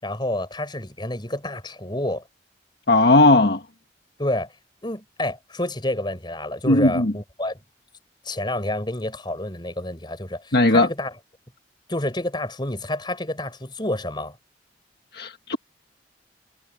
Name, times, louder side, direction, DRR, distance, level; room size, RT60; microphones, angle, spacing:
voice 1, 0.0-2.2 4.2-4.5 4.8-7.6 8.2-11.1 11.9-14.4, left 1 dB, 25° left, 4.9 m, -29 dB
voice 2, 2.9-3.6 6.7-7.1 10.5-10.9 15.1-15.6, left 2 dB, 60° left, 1.6 m, -17 dB
head